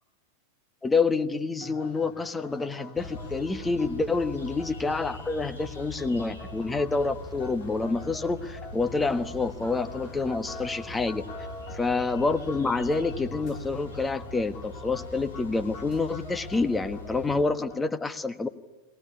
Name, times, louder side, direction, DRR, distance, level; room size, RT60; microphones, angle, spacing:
voice 1, 0.8-11.2 11.8-18.5, left 3 dB, 10° left, 10 dB, 1.4 m, -28 dB
sound 1, 1.6-18.0, left 3 dB, 40° left, 3.7 m, -45 dB
sound 2, 2.9-17.4, left 2 dB, 70° left, 5.9 m, -42 dB
21.0 x 20.0 x 9.9 m, 1.2 s
figure-of-eight pair, 90°, 0 cm